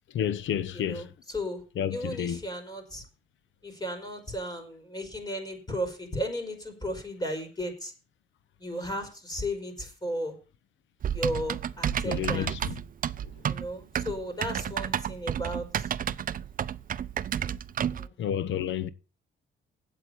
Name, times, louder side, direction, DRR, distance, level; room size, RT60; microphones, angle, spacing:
voice 1, 0.1-1.1 1.8-2.4 12.0-12.7 18.2-18.9, left 9 dB, 70° left, 1.0 m, -30 dB
voice 2, 0.7-1.6 1.9-3.0 3.6-7.9 8.6-10.3 11.1-12.5 13.5-15.9 17.8-18.1, equal, 20° left, 4.8 m, -35 dB
Typing, 11.0-18.1, right 9 dB, 45° right, 0.5 m, -31 dB
8.2 x 7.9 x 8.8 m
cardioid pair, 90°, 20 cm